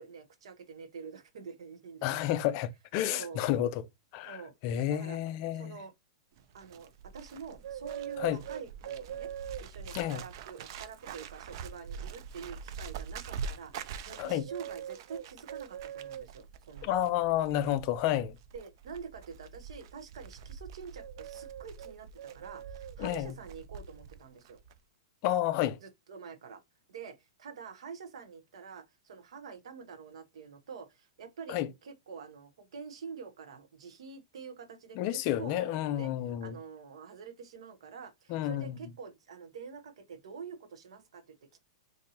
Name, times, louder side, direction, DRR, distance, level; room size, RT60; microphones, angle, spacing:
voice 1, 0.0-2.6 3.1-3.4 4.3-4.5 4.9-5.2 5.5-5.9 6.5-9.3 9.6-17.1 18.5-24.6 25.8-26.6 26.9-36.1 36.4-41.6, right 5 dB, 75° right, 0.7 m, -47 dB
voice 2, 2.0-3.8 4.1-4.4 4.6-5.8 8.2-8.4 10.0-10.2 14.2-14.4 16.8-18.4 23.0-23.3 25.2-25.8 31.5-31.7 35.0-36.5 38.3-38.7, left 12 dB, 35° left, 0.4 m, -30 dB
Bird, 6.4-24.2 24.4-24.8, right 7 dB, 50° right, 0.4 m, -43 dB
3.9 x 2.6 x 2.7 m
supercardioid pair, 160°, 3 cm